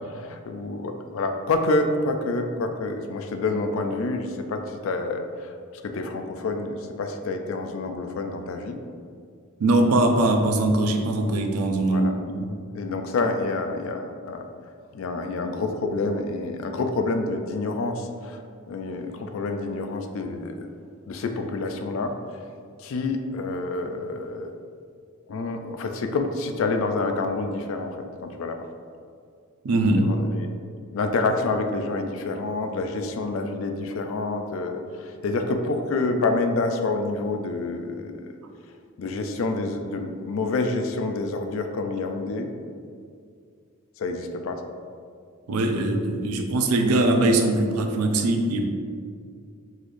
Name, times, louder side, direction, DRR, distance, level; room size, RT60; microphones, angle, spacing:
voice 1, 0.0-5.5 5.8-8.8 11.9-12.1 12.7-14.5 14.9-18.4 18.7-20.7 21.1-22.2 22.8-24.5 25.3-28.7 29.9-30.6 30.9-38.4 39.0-42.5 44.0-44.6, left 3 dB, 65° left, 6 dB, 0.3 m, -28 dB
voice 2, 9.6-12.5 29.6-30.1 45.5-48.7, right 2 dB, 90° right, 4 dB, 0.4 m, -21 dB
3.9 x 3.1 x 2.5 m, 2.2 s
head